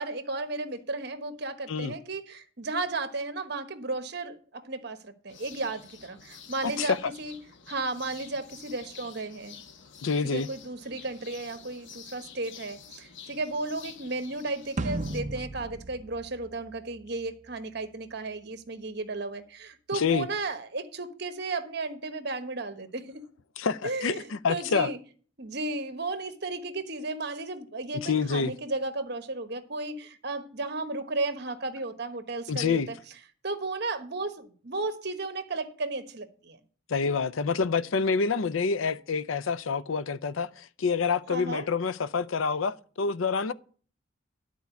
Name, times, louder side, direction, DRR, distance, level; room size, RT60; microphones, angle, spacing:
voice 1, 0.0-7.3 7.7-9.6 10.2-23.3 23.8-25.0 25.4-33.0 33.4-36.6 41.3-41.7, right 3 dB, 55° right, 1.2 m, -34 dB
sound 1, 5.3-15.2, left 7 dB, 65° left, 0.9 m, -49 dB
voice 2, 6.6-7.0 10.0-10.5 19.9-20.3 23.6-24.9 28.0-28.5 32.5-32.9 36.9-43.5, left 5 dB, 80° left, 0.5 m, -27 dB
sound 2, 14.8-17.2, right 2 dB, 35° right, 0.6 m, -35 dB
12.0 x 4.6 x 8.2 m
head